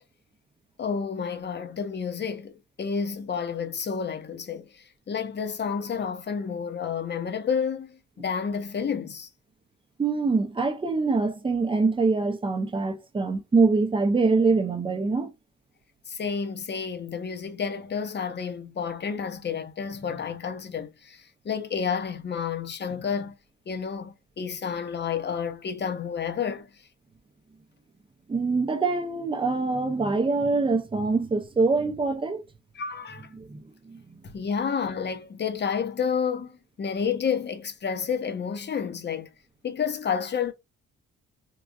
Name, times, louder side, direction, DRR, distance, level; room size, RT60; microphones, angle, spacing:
voice 1, 0.8-9.3 16.1-23.3 23.7-26.7 32.7-33.3 34.2-39.3 39.6-40.5, left 6 dB, 35° left, 0.7 m, -30 dB
voice 2, 10.0-15.3 28.3-32.4 33.3-34.2, right 4 dB, 15° right, 0.6 m, -24 dB
3.8 x 2.2 x 2.4 m
cardioid pair, 90°, 30 cm